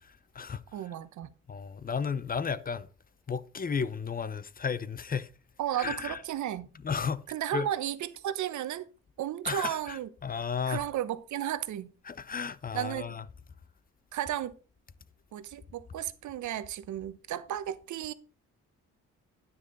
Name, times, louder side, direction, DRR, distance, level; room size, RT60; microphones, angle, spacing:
voice 1, 0.0-0.6 1.5-2.9 3.3-5.3 5.8-6.2 6.8-7.2 7.5-7.7 9.5-10.9 12.1-13.2, left 6 dB, 30° left, 0.7 m, -33 dB
voice 2, 0.7-1.3 5.6-6.7 7.3-8.9 9.2-10.1 10.7-11.9 12.7-13.0 14.1-14.5 15.3-18.1, right 11 dB, 70° right, 1.0 m, -34 dB
9.9 x 9.5 x 4.0 m
cardioid pair, 90°, 30 cm